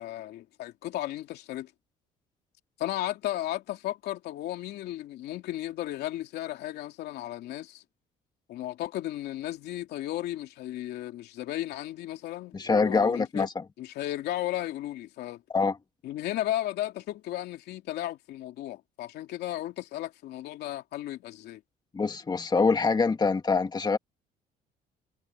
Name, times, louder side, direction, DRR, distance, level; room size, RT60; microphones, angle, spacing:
voice 1, 0.0-1.7 2.8-7.8 8.5-13.5 13.8-15.4 16.0-21.6, left 14 dB, 75° left, 2.9 m, -34 dB
voice 2, 12.5-13.5 15.5-15.8 21.9-24.0, left 4 dB, 25° left, 2.1 m, -24 dB
cardioid pair, 110°, 17 cm